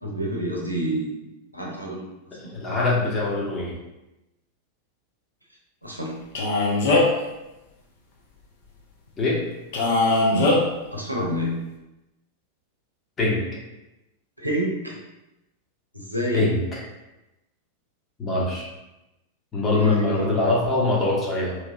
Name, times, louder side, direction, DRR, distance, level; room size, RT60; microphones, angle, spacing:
voice 1, 0.0-2.1 2.4-2.5 5.8-6.2 10.1-10.6 10.9-11.5 14.4-15.0 15.9-16.5 19.8-20.3, right 1 dB, 90° right, -2 dB, 0.6 m, -28 dB
voice 2, 2.5-3.7 9.2-9.4 13.2-13.4 16.3-16.8 18.2-18.7 19.5-21.6, left 2 dB, 20° left, -4 dB, 0.9 m, -23 dB
Male speech man speaking, 6.3-7.2 9.7-10.6, left 2 dB, 55° left, 0.6 m, -20 dB
3.1 x 2.8 x 2.4 m, 0.98 s
figure-of-eight pair, 90°, 0 cm